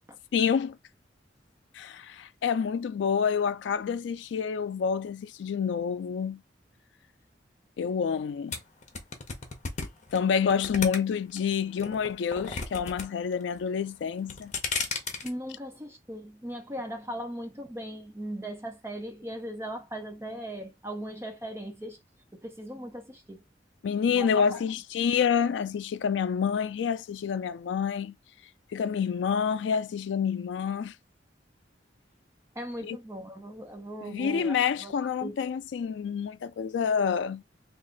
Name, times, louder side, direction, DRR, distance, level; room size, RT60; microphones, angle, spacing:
voice 1, 0.3-0.8 1.7-6.4 7.8-8.6 10.1-14.5 23.8-28.1 28.7-30.9 32.8-33.0 34.0-37.4, left 7 dB, 75° left, 0.3 m, -28 dB
sound 1, 8.5-11.4 11.8-13.1 13.3-13.8 14.2-15.3, left 4 dB, 45° left, 0.9 m, -33 dB
voice 2, 15.2-22.0 22.3-23.4 24.1-24.6 32.6-35.4, equal, 15° right, 0.7 m, -38 dB
3.1 x 2.5 x 3.8 m
head